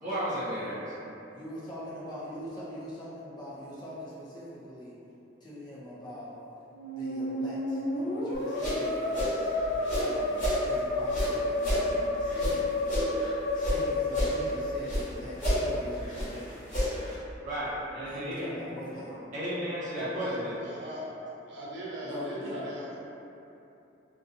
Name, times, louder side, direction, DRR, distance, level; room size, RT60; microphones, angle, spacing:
voice 1, 0.0-0.9 17.4-18.5 19.3-20.6, equal, 40° right, -12 dB, 1.0 m, -33 dB
voice 2, 1.3-4.9 5.4-6.4 6.9-9.5 10.0-12.7 13.5-16.7 18.0-19.1 22.0-22.7, equal, 25° left, -9 dB, 0.4 m, -42 dB
Musical instrument, 6.7-15.5, left 1 dB, 85° left, 0.6 m, -31 dB
sound 1, 8.3-10.6 11.0-13.8 14.1-15.1 15.3-17.2, equal, 45° left, 1.4 m, -31 dB
voice 3, 20.1-21.0 21.5-23.0, right 1 dB, 75° right, -8 dB, 0.6 m, -39 dB
2.6 x 2.3 x 2.5 m, 2.9 s
head